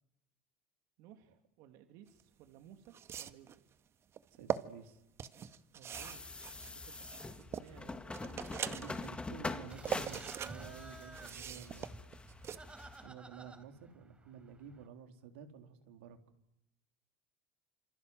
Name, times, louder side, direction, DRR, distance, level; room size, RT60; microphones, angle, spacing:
voice 1, 1.0-3.6 5.7-6.3 6.7-8.9, right 10 dB, 65° right, 6 dB, 2.9 m, -59 dB
sound 1, 2.2-2.3 2.9-3.6 4.2-4.6 5.2-7.7 8.1-9.1 9.5-10.5 10.8-12.6, right 9 dB, 45° right, 2.0 m, -41 dB
voice 2, 4.4-5.0 8.6-12.0 13.0-16.2, right 7 dB, 85° right, 6 dB, 3.8 m, -52 dB
sound 2, 5.9-13.1, left 3 dB, 15° left, 3.0 m, -45 dB
sound 3, 9.7-14.9, right 3 dB, 15° right, 4.7 m, -53 dB
28.0 x 26.0 x 7.9 m, 0.83 s
hypercardioid pair, 85°, 6 cm